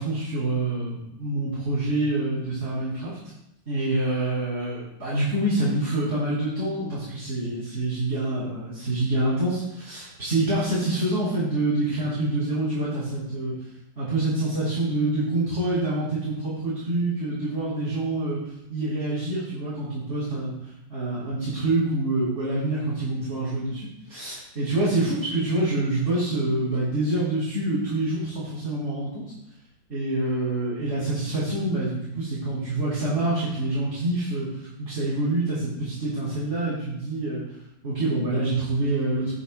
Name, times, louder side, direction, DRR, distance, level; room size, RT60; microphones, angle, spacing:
voice 1, 0.0-3.2 3.7-13.5 14.0-18.4 18.7-20.5 20.9-29.2 29.9-37.4 37.8-39.3, right 2 dB, 35° right, -10 dB, 4.4 m, -26 dB
19.0 x 8.3 x 2.2 m, 0.85 s
omnidirectional pair, 2.3 m